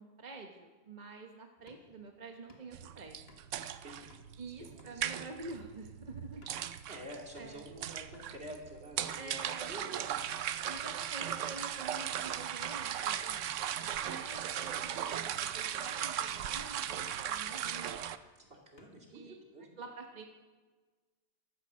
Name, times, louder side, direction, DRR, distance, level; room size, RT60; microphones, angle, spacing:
voice 1, 0.0-3.3 4.4-6.4 7.3-7.6 9.1-9.9 10.7-13.5 13.8-17.9 19.1-20.2, right 3 dB, 40° right, 3 dB, 1.1 m, -48 dB
sound 1, 1.6-7.6 8.0-8.3 8.7-8.8 9.0-9.2 9.7-10.2 10.7-11.0 11.6-11.9 12.4-12.6 13.1-13.3 13.7-14.2 14.5-14.9 15.5-15.8 16.3-16.6 16.9-17.3 17.7-18.2 18.5-19.2, left 2 dB, 55° left, 1.9 m, -62 dB
sound 2, 2.7-18.2, right 10 dB, 85° right, 1.0 m, -38 dB
voice 2, 3.8-4.1 4.9-5.3 6.9-10.3 18.4-19.7, equal, 55° right, 0 dB, 2.9 m, -49 dB
14.5 x 12.5 x 6.4 m, 1.4 s
omnidirectional pair, 1.2 m